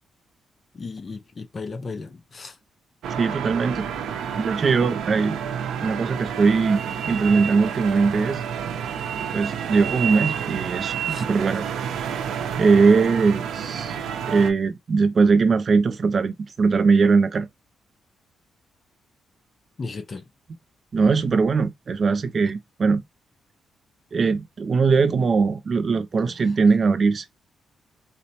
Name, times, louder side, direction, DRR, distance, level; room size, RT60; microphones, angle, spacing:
voice 1, 0.7-2.5 11.1-11.3 19.8-20.3, left 4 dB, 25° left, 0.4 m, -35 dB
sound 1, 3.0-14.5, right 8 dB, 80° right, 0.6 m, -29 dB
voice 2, 3.2-3.9 4.4-5.4 5.8-8.4 9.3-11.6 12.6-14.0 14.3-17.5 20.9-23.0 24.1-27.3, right 4 dB, 30° right, 0.3 m, -20 dB
4.0 x 2.1 x 2.7 m
cardioid pair, 170°, 0 cm